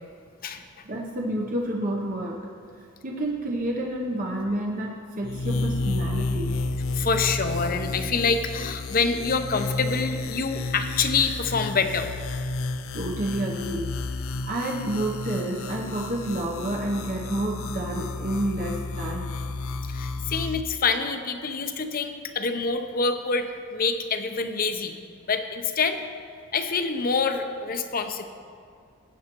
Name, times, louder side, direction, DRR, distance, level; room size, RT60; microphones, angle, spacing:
voice 1, 0.8-2.5 3.0-6.6 12.9-19.3, right 1 dB, 40° right, 0 dB, 0.8 m, -29 dB
sound 1, 5.2-20.6, left 3 dB, 75° left, 0.5 m, -31 dB
voice 2, 6.9-12.1 19.9-24.9 25.3-26.0 26.5-28.3, left 4 dB, 45° left, 7 dB, 0.7 m, -26 dB
19.0 x 8.8 x 3.0 m, 2.2 s
head